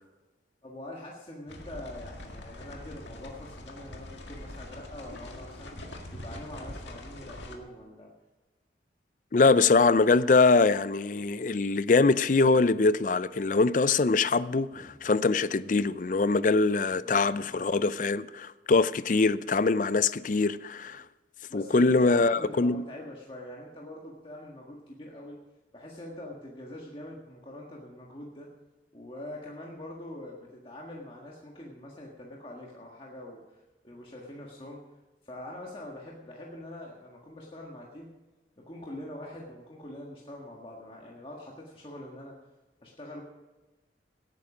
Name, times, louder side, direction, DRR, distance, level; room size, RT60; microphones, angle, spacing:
voice 1, 0.6-8.1 14.7-14.9 17.0-17.6 21.5-25.4 25.7-28.5 28.9-34.8 35.2-38.2 38.6-42.4 42.8-43.2, left 1 dB, 30° left, 1.6 m, -44 dB
sound 1, 1.5-7.6, left 1 dB, 80° left, 1.9 m, -43 dB
voice 2, 9.3-21.0 21.5-22.9, left 3 dB, 45° left, 0.4 m, -23 dB
17.5 x 9.4 x 5.0 m
head